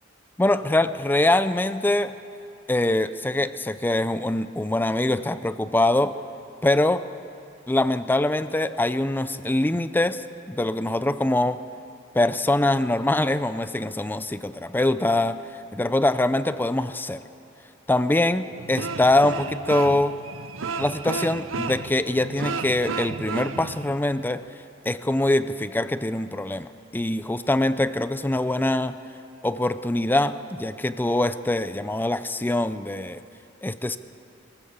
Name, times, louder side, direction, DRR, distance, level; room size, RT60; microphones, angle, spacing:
voice 1, 0.4-2.1 2.7-6.2 6.6-7.0 7.7-11.6 12.1-15.4 15.7-17.2 17.9-20.2 20.8-24.4 24.9-29.0 29.4-33.2 33.6-34.0, left 1 dB, 10° left, 12 dB, 0.4 m, -23 dB
sound 1, 18.5-24.0, right 4 dB, 80° right, 0.8 m, -32 dB
23.0 x 14.0 x 8.1 m, 2.6 s
head